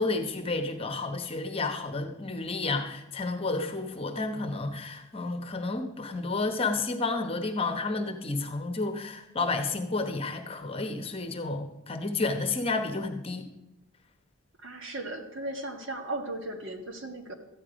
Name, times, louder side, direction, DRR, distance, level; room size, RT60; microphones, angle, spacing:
voice 1, 0.0-13.5, left 3 dB, 25° left, 5 dB, 1.0 m, -31 dB
voice 2, 14.6-17.3, right 2 dB, 60° right, 4 dB, 1.5 m, -36 dB
13.5 x 9.4 x 5.1 m, 0.94 s
head